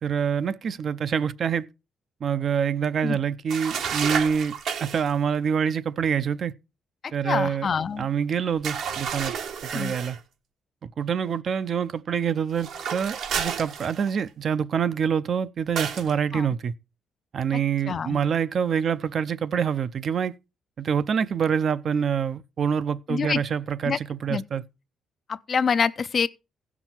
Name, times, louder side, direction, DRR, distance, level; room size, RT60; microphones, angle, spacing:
voice 1, 0.0-1.7 2.2-6.5 7.1-7.7 8.0-9.3 9.7-10.2 10.8-16.7 17.3-20.3 20.8-24.6, right 7 dB, 55° right, 0.6 m, -26 dB
sound 1, 3.5-5.1 8.6-10.2 12.5-14.3 15.8-16.1, right 7 dB, 75° right, 1.3 m, -31 dB
voice 2, 7.2-8.1 9.7-9.9 16.3-16.5 17.9-18.2 23.1-23.4 23.8-24.0 24.3-24.4 25.3-26.3, left 6 dB, 45° left, 0.6 m, -26 dB
15.5 x 6.1 x 4.4 m
cardioid pair, 90°, 0 cm